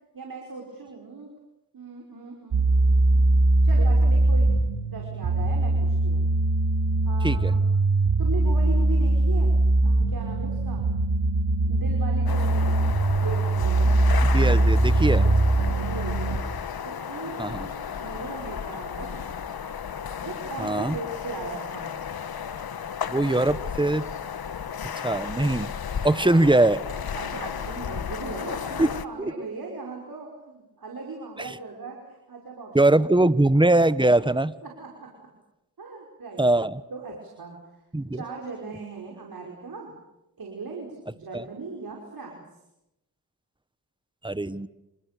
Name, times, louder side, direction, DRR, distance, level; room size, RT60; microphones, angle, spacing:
voice 1, 0.1-1.3 1.7-3.3 3.6-6.2 7.0-7.7 8.2-9.5 9.8-10.9 11.6-12.8 13.2-13.8 15.4-16.4 16.8-19.2 20.2-22.0 27.1-32.8 34.6-35.3 35.8-36.5 36.9-37.8 38.1-39.9 40.4-42.4, right 3 dB, 65° right, 0 dB, 5.7 m, -38 dB
sound 1, 2.5-16.4, right 2 dB, 85° right, 3.0 m, -21 dB
sound 2, 12.3-29.1, left 7 dB, 75° left, 1.4 m, -34 dB
voice 2, 13.8-15.3 17.4-17.7 20.6-21.0 23.1-24.0 25.0-25.7 26.0-26.8 28.8-28.9 29.2-29.3 31.4-31.5 32.7-34.5 36.4-36.8 37.9-38.2 41.3-41.4 44.2-44.7, right 2 dB, 15° right, 15 dB, 1.3 m, -22 dB
29.0 x 27.5 x 6.9 m, 0.91 s
cardioid pair, 50°, 37 cm